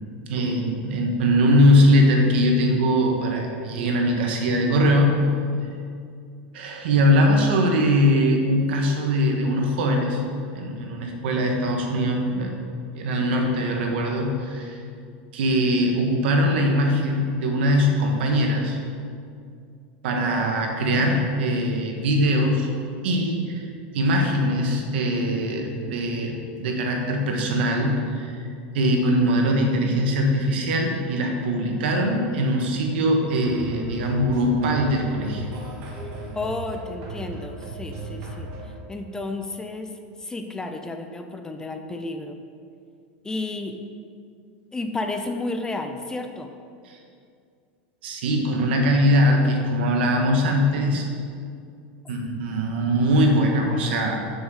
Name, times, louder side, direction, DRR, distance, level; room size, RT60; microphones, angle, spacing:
voice 1, 0.3-5.1 6.5-10.2 10.5-12.6 13.0-14.8 15.3-18.8 20.0-22.7 23.0-23.6 23.9-28.5 28.7-35.5 46.9-47.0 48.0-51.0 52.1-54.2, equal, 80° right, 2 dB, 1.4 m, -21 dB
sound 1, 33.2-38.8, right 2 dB, 55° right, 2.2 m, -36 dB
voice 2, 35.9-42.4 43.2-43.8 44.7-46.5, left 2 dB, 10° left, 6 dB, 0.5 m, -32 dB
7.3 x 6.3 x 4.9 m, 2.3 s
supercardioid pair, 135°, 6 cm